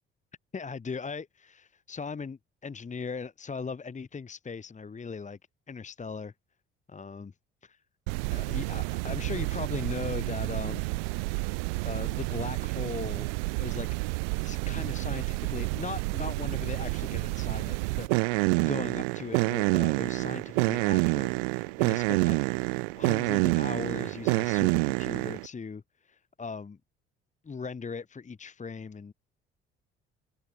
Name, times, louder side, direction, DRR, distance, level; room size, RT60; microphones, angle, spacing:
voice 1, 0.5-5.4 5.7-6.3 6.9-7.3 7.6-7.8 8.3-10.9 11.2-11.5 11.8-13.9 14.4-22.4 22.9-26.8 27.4-29.1, left 5 dB, 25° left, 1.2 m, -39 dB
sound 1, 8.1-25.5, right 32 dB, 70° right, 0.6 m, -28 dB
figure-of-eight pair, 50°, 30 cm